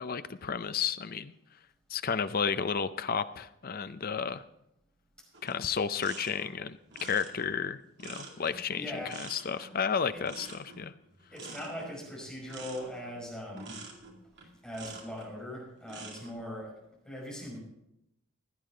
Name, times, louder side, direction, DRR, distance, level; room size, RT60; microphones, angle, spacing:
voice 1, 0.0-1.3 1.9-4.4 5.4-8.9 9.2-10.9, left 6 dB, 40° left, 13 dB, 0.5 m, -32 dB
sound 1, 5.3-15.3 15.8-16.3, right 3 dB, 50° right, 2.3 m, -48 dB
voice 2, 8.7-9.5 10.1-10.2 11.3-13.8 14.6-16.8 17.0-17.6, left 1 dB, 5° left, -5 dB, 5.6 m, -40 dB
16.0 x 11.0 x 3.8 m, 0.81 s
head